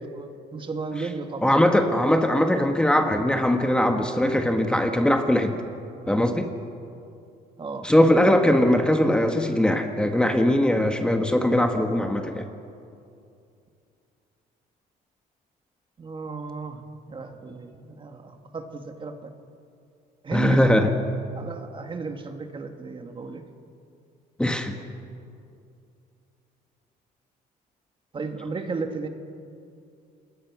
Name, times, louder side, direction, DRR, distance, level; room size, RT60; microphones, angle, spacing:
voice 1, 0.0-1.5 7.6-7.9 16.0-16.8 17.1-19.3 20.2-20.7 21.3-23.4 28.1-29.1, right 4 dB, 30° right, 5 dB, 2.1 m, -34 dB
voice 2, 1.4-5.5 6.1-6.5 7.8-12.4 20.3-20.9 24.4-24.8, left 1 dB, 5° left, 4 dB, 1.6 m, -21 dB
27.0 x 20.5 x 6.2 m, 2.5 s
cardioid pair, 110°, 17 cm